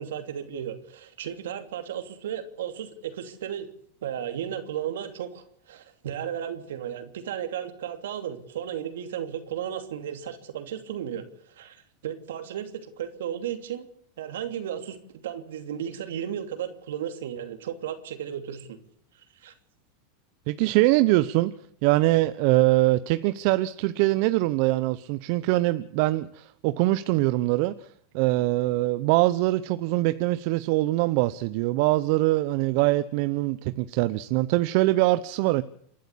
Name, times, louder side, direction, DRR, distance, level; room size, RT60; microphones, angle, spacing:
voice 1, 0.0-3.7 4.0-11.8 12.0-13.9 14.2-15.0 15.2-18.8 19.4-19.5, right 9 dB, 80° right, 8 dB, 2.8 m, -34 dB
voice 2, 20.5-21.5 21.8-27.9 28.1-35.6, right 18 dB, 60° right, 14 dB, 0.8 m, -23 dB
28.0 x 11.5 x 8.5 m, 0.66 s
hypercardioid pair, 110°, 0 cm